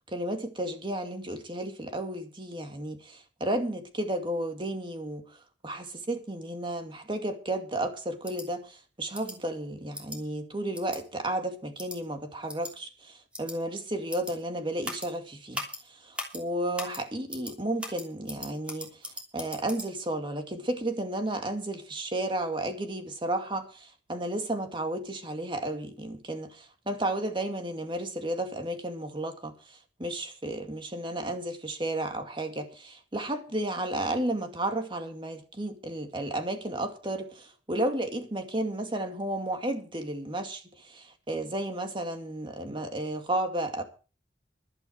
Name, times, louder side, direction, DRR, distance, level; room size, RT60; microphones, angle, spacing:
voice 1, 0.0-5.4 5.6-43.8, right 1 dB, 30° right, 2.3 m, -33 dB
sound 1, 8.2-8.5 9.1-9.4 9.9-10.2 10.7-11.0 11.8-12.0 12.5-12.7 13.3-13.6 14.1-14.3 14.8-15.1 15.5-15.8 16.2-16.4 16.8-17.0 17.3-17.5 17.8-19.9, equal, 5° right, 3.1 m, -38 dB
14.0 x 12.0 x 4.6 m
head